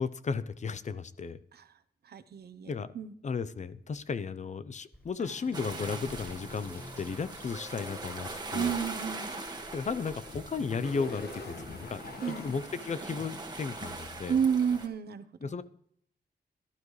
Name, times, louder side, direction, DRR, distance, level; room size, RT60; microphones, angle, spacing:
voice 1, 0.0-1.4 2.7-2.9 3.2-8.7 9.7-12.0 12.3-14.4 15.4-15.6, left 5 dB, 45° left, 14 dB, 0.7 m, -34 dB
voice 2, 2.0-3.1 8.5-9.3 12.2-12.5 14.3-15.5, right 7 dB, 85° right, 12 dB, 0.9 m, -31 dB
Fill (with liquid), 4.9-10.6, equal, 10° left, 6.3 m, -58 dB
sound 1, 5.2-13.9, left 3 dB, 80° left, 1.5 m, -47 dB
sound 2, 5.5-14.9, right 3 dB, 25° right, 1.8 m, -42 dB
17.0 x 12.0 x 3.2 m, 0.66 s
wide cardioid pair, 135°, 16 cm